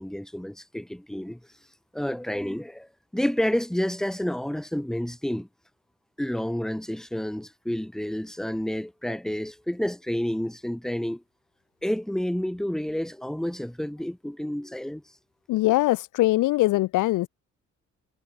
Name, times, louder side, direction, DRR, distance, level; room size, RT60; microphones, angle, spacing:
voice 1, 0.0-1.4 1.9-5.5 6.2-11.2 11.8-15.0, equal, ahead, 1.4 m, -29 dB
voice 2, 15.5-17.3, left 17 dB, 85° left, 0.8 m, -22 dB
cardioid pair, 90°, 30 cm